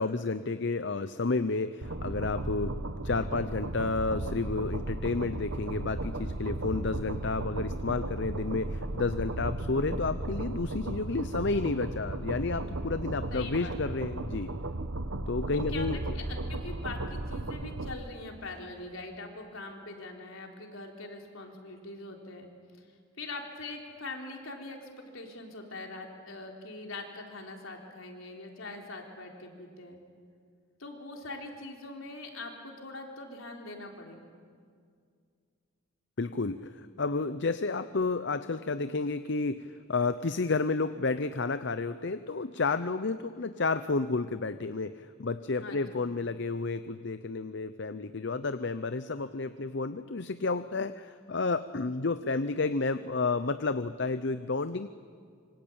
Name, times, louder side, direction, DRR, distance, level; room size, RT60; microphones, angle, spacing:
voice 1, 0.0-2.8 3.0-14.5 15.3-16.0 36.2-54.9, left 3 dB, 55° left, 12 dB, 0.7 m, -31 dB
sound 1, 1.8-18.0, right 2 dB, 70° right, 1.2 m, -35 dB
voice 2, 13.3-13.9 15.5-22.5 23.2-30.0 30.8-34.3 45.6-46.0, left 2 dB, 75° left, 2 dB, 4.0 m, -42 dB
26.5 x 25.0 x 8.9 m, 2.2 s
head